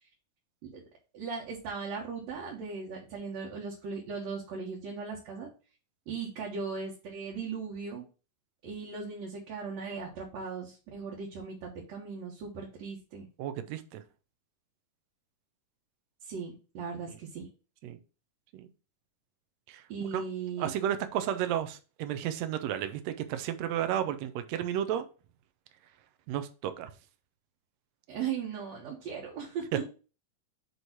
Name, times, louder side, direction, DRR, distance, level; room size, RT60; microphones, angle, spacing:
voice 1, 1.1-5.5 6.1-8.0 8.6-13.3 16.2-17.5 19.9-20.7 28.1-29.9, right 5 dB, 60° right, 2.3 m, -38 dB
voice 2, 13.4-14.0 17.8-18.0 18.5-18.7 19.7-19.8 20.1-20.2 20.6-25.1 26.3-26.9, right 10 dB, 75° right, 1.7 m, -32 dB
8.1 x 3.2 x 5.9 m
omnidirectional pair, 3.8 m